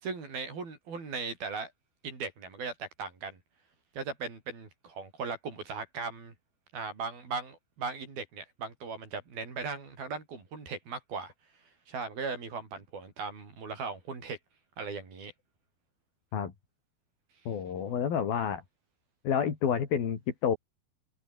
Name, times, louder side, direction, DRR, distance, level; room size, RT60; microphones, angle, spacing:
voice 1, 0.0-1.7 2.0-3.4 3.9-6.3 6.7-11.3 11.9-14.4 14.8-15.3, right 4 dB, 85° right, 8.2 m, -38 dB
voice 2, 17.5-18.6 19.2-20.6, left 7 dB, 80° left, 5.1 m, -29 dB
omnidirectional pair, 4.2 m